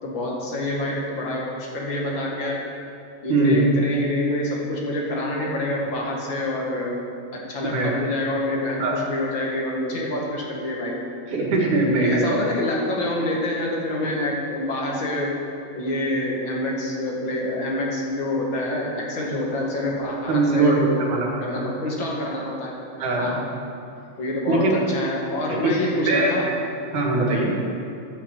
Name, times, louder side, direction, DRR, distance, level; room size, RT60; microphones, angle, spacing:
voice 1, 0.0-2.6 3.2-7.0 7.3-11.0 11.9-15.4 15.7-21.1 21.4-22.7 23.2-23.4 24.2-26.5, left 1 dB, 45° left, -2 dB, 2.2 m, -27 dB
voice 2, 3.3-3.6 7.6-7.9 8.8-9.0 11.3-12.4 20.3-21.6 23.0-23.4 24.5-24.8 25.5-25.8 26.1-26.3 26.9-27.5, right 2 dB, 70° right, -2 dB, 3.4 m, -21 dB
14.5 x 5.9 x 7.7 m, 2.5 s
omnidirectional pair, 3.7 m